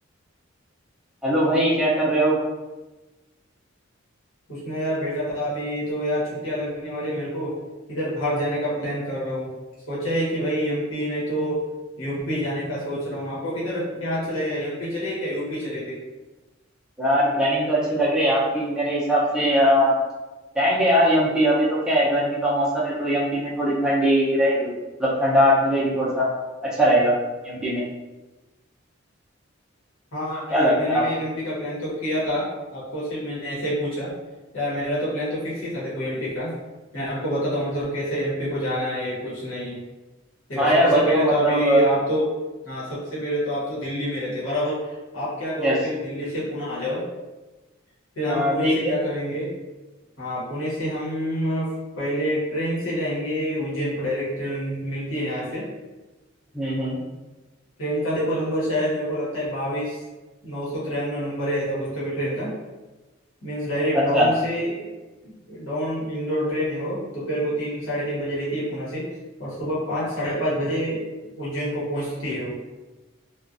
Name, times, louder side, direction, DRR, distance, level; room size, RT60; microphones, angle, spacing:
voice 1, 1.2-2.4 17.0-19.9 20.5-24.7 25.0-26.3 26.6-27.1 27.4-27.8 30.5-31.0 40.6-41.8 45.6-45.8 48.3-48.9 56.5-57.0 63.9-64.3, equal, 5° right, -7 dB, 0.6 m, -20 dB
voice 2, 4.5-7.5 7.9-9.5 9.9-11.6 12.0-16.0 30.1-34.1 34.5-36.5 36.9-39.8 40.5-42.2 42.6-47.0 48.1-49.5 50.2-55.7 57.8-60.0 60.4-62.6 63.4-64.9 65.2-69.1 69.4-71.0 71.4-72.6, equal, 70° left, -8 dB, 1.1 m, -27 dB
2.4 x 2.3 x 2.5 m, 1.1 s
head